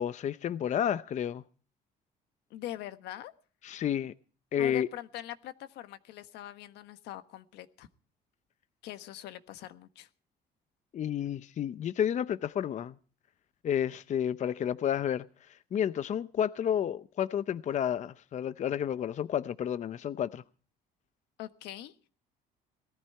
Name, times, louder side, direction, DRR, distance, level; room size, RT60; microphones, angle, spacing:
voice 1, 0.0-1.4 3.6-4.1 4.5-4.9 10.9-13.0 13.6-20.4, left 9 dB, 45° left, 0.6 m, -31 dB
voice 2, 2.5-3.3 4.6-7.9 8.8-10.1 21.4-21.9, left 13 dB, 85° left, 1.4 m, -43 dB
18.5 x 14.0 x 4.4 m
cardioid pair, 110°, 17 cm